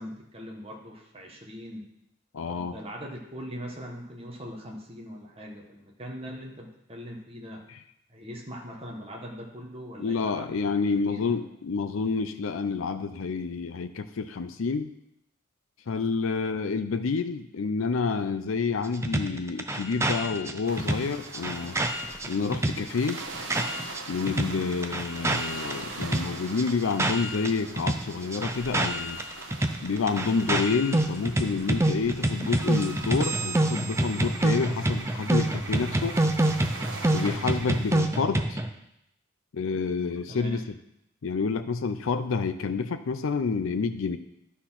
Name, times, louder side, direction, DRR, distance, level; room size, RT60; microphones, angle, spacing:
voice 1, 0.0-1.9 2.5-7.6 8.1-10.5 11.1-11.5 40.3-40.6, equal, 30° right, 0 dB, 1.5 m, -41 dB
voice 2, 2.3-2.8 7.7-7.8 10.0-14.9 15.9-21.8 22.3-23.2 24.1-29.2 29.8-36.2 37.1-38.6 39.5-40.7 41.2-44.2, left 4 dB, 80° left, 9 dB, 0.5 m, -29 dB
sound 1, 19.0-24.0 24.3-27.5 27.8-38.7, right 1 dB, 15° right, 0.5 m, -27 dB
sound 2, 20.7-38.0, right 2 dB, 65° right, 1.2 m, -42 dB
11.5 x 4.3 x 5.8 m, 0.80 s
head